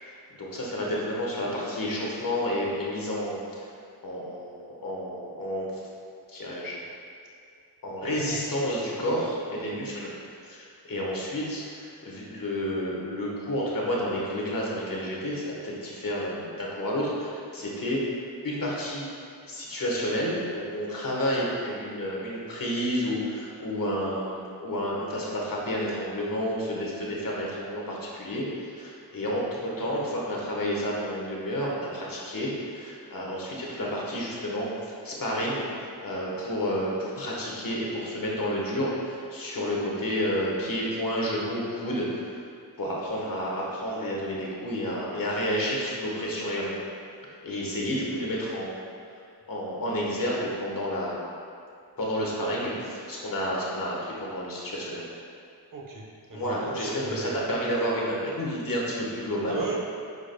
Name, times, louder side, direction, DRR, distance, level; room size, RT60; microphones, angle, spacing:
voice 1, 0.0-3.7 4.0-5.7 6.3-6.8 7.8-10.1 10.4-18.0 18.4-19.0 19.4-34.7 35.0-42.4 42.8-46.7 47.4-48.8 49.5-51.3 52.0-55.0 56.3-59.6, equal, 55° left, -4 dB, 1.4 m, -30 dB
voice 2, 8.0-8.6 9.0-9.3 55.7-57.5 59.4-59.8, right 3 dB, 50° right, -2 dB, 1.0 m, -37 dB
9.3 x 4.9 x 2.3 m, 2.4 s
wide cardioid pair, 90°, 41 cm